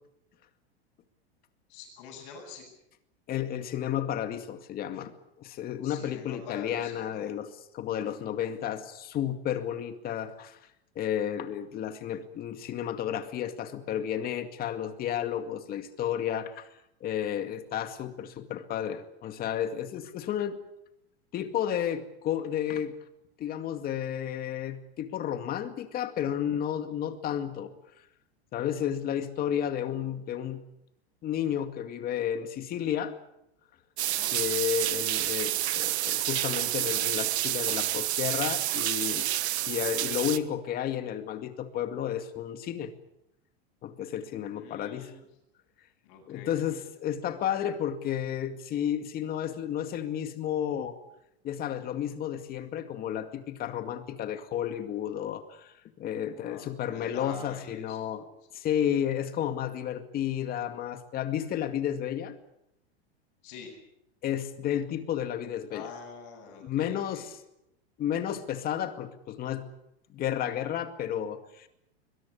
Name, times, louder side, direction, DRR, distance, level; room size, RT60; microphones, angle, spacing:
voice 1, 1.7-2.6 5.8-7.3 34.0-34.4 44.5-45.3 46.0-46.8 56.3-58.0 63.4-63.8 65.7-67.3, left 5 dB, 45° left, -5 dB, 7.9 m, -46 dB
voice 2, 3.3-5.1 5.4-10.6 11.0-16.7 17.0-20.6 21.3-22.9 23.4-27.7 28.5-30.6 31.2-33.1 34.3-39.3 39.7-42.9 43.8-45.1 46.3-50.9 51.4-58.2 58.5-62.4 64.2-65.9 66.6-67.4 68.0-69.7 70.1-71.7, left 10 dB, 30° left, 9 dB, 2.2 m, -32 dB
sound 1, 34.0-40.4, right 14 dB, 85° right, 1.4 m, -29 dB
22.0 x 21.5 x 8.4 m, 0.82 s
supercardioid pair, 150°, 32 cm